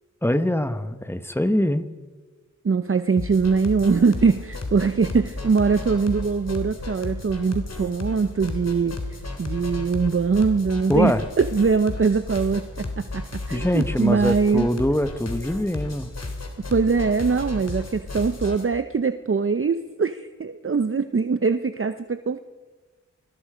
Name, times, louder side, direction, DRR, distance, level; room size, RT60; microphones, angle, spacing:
voice 1, 0.2-1.9 10.9-11.2 13.5-16.1, left 1 dB, 10° left, 11 dB, 1.3 m, -23 dB
voice 2, 2.6-14.7 16.7-22.4, right 5 dB, 45° right, 10 dB, 0.8 m, -22 dB
sound 1, 3.2-18.6, left 2 dB, 55° left, 3.3 m, -33 dB
25.5 x 21.0 x 5.1 m, 1.4 s
wide cardioid pair, 65°, 30 cm